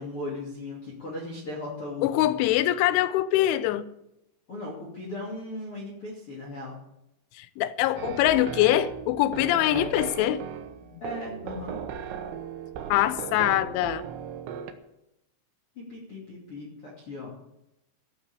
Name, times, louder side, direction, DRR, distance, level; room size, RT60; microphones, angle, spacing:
voice 1, 0.0-2.3 4.5-6.8 9.7-10.0 11.0-11.8 15.8-17.3, left 2 dB, 35° left, 2.8 m, -37 dB
voice 2, 2.0-3.9 7.4-10.4 12.9-14.0, left 14 dB, 85° left, 3.1 m, -23 dB
sound 1, 8.0-14.7, right 8 dB, 75° right, 3.1 m, -37 dB
15.0 x 7.3 x 8.2 m
omnidirectional pair, 5.5 m